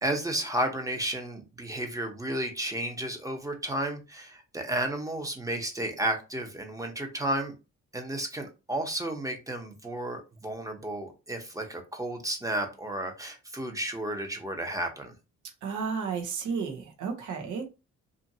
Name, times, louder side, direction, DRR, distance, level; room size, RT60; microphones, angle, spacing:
voice 1, 0.0-7.5 7.9-15.1, right 1 dB, 10° right, 0.8 m, -32 dB
voice 2, 15.6-17.7, right 5 dB, 75° right, 0.9 m, -32 dB
2.8 x 2.5 x 2.7 m
cardioid pair, 90°, 30 cm